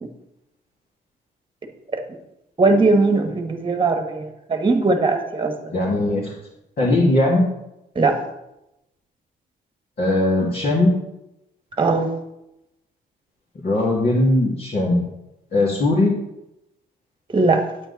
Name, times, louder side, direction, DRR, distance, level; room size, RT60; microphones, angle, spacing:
voice 1, 2.6-5.7 7.9-8.2 11.8-12.1 17.3-17.6, right 3 dB, 25° right, 6 dB, 1.5 m, -19 dB
voice 2, 5.7-6.4 6.8-7.5 10.0-11.0 13.6-15.0 15.5-16.1, left 1 dB, 45° left, -5 dB, 2.7 m, -19 dB
9.2 x 9.0 x 4.2 m, 0.89 s
cardioid pair, 90°, 20 cm